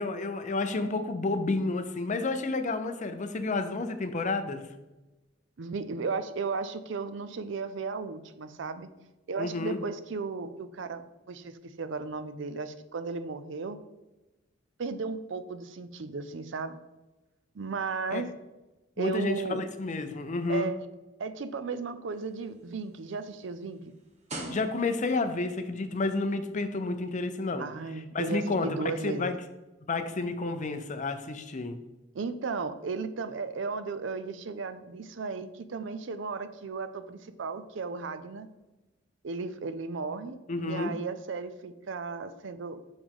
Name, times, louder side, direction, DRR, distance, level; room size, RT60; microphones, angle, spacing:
voice 1, 0.0-4.7 9.4-9.8 18.1-18.2 19.0-20.7 24.5-27.7 28.1-28.8 29.0-29.3 29.9-31.8 40.5-40.9, left 3 dB, 40° left, 8 dB, 0.6 m, -30 dB
voice 2, 5.6-8.9 9.3-13.8 14.8-16.8 17.5-18.3 19.0-19.6 20.5-20.8 21.2-23.9 27.6-29.3 32.1-38.5 39.2-42.8, right 4 dB, 70° right, 11 dB, 0.5 m, -35 dB
sound 1, 22.1-25.3 26.1-26.3, right 1 dB, 35° right, 1.0 m, -43 dB
6.2 x 5.1 x 3.6 m, 1.0 s
head